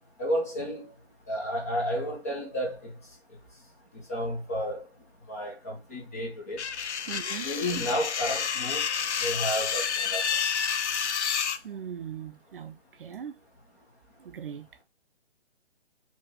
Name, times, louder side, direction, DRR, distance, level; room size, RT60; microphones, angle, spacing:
voice 1, 0.2-0.9 1.3-2.9 4.1-4.8 5.3-6.6 7.4-8.8 9.2-10.2, equal, 15° left, 0.4 m, -31 dB
sound 1, 6.6-11.6, left 7 dB, 85° left, 0.5 m, -29 dB
voice 2, 7.1-7.5 11.6-13.4 14.2-14.7, right 8 dB, 55° right, 0.4 m, -39 dB
4.4 x 2.8 x 3.0 m
figure-of-eight pair, 140°, 33 cm